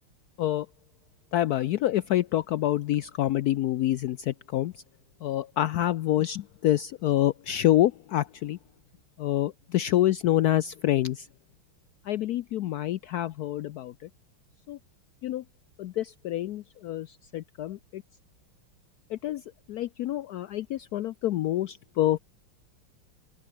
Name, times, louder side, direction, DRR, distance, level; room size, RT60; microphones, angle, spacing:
voice 1, 1.3-4.8 5.2-8.6 9.2-11.3 12.0-13.9 14.7-14.8 15.2-15.4 15.8-18.0 19.1-19.4 19.7-22.2, left 13 dB, 80° left, 0.8 m, -27 dB
open air
omnidirectional pair, 2.3 m